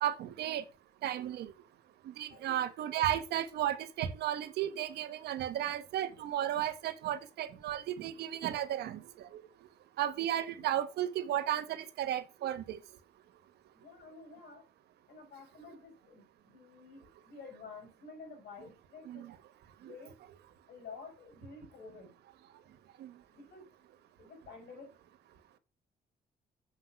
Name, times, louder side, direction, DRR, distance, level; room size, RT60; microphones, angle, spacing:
voice 1, 0.0-0.6 1.0-1.5 2.1-9.0 9.3-9.4 10.0-12.8 19.1-19.3 19.8-19.9 23.0-23.1, right 11 dB, 85° right, 1.2 m, -34 dB
voice 2, 13.7-14.6 15.1-19.3 19.8-20.1 20.7-22.1 23.3-23.7 24.2-24.9, left 4 dB, 75° left, 5.2 m, -50 dB
7.2 x 6.0 x 5.8 m
cardioid pair, 130°, 17 cm